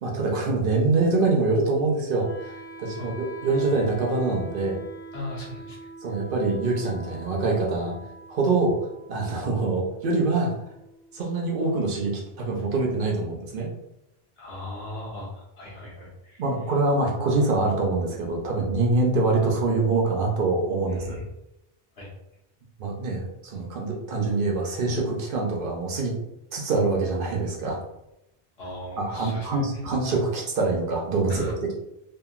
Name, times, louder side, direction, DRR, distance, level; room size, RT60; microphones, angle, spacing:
voice 1, 0.0-4.8 6.0-8.0 8.3-8.8 9.1-10.5 11.1-13.7 16.4-21.2 22.8-26.1 26.5-27.8 29.0-31.7, right 3 dB, 60° right, 0 dB, 0.8 m, -25 dB
Wind instrument woodwind instrument, 2.1-12.1, right 2 dB, 65° left, 1.0 m, -45 dB
voice 2, 5.1-5.9 14.4-16.5 20.9-21.2 21.9-22.1 28.6-29.9 31.3-31.5, left 1 dB, 80° left, -4 dB, 1.2 m, -38 dB
2.8 x 2.5 x 2.4 m, 0.87 s
omnidirectional pair, 1.0 m